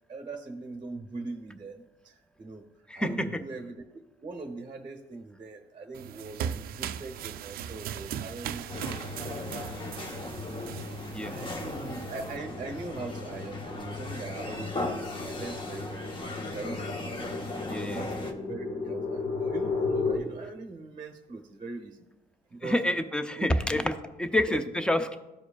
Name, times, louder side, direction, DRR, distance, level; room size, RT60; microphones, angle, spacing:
voice 1, 0.1-2.6 2.9-9.7 11.3-16.1 16.5-17.5 17.8-22.0 22.5-22.8 23.3-23.8 24.5-24.6 24.9-25.0, right 3 dB, 25° right, 4 dB, 0.8 m, -41 dB
voice 2, 2.9-3.3 11.1-11.3 17.7-18.1 22.6-25.2, left 1 dB, 5° left, 9 dB, 0.6 m, -28 dB
sound 1, 5.9-12.4, right 9 dB, 60° right, 0.4 m, -38 dB
sound 2, 8.7-18.3, left 2 dB, 30° left, 1.0 m, -37 dB
sound 3, 12.2-20.2, left 4 dB, 45° left, 1.5 m, -35 dB
14.0 x 4.9 x 2.4 m, 1.0 s
cardioid pair, 110°, 17 cm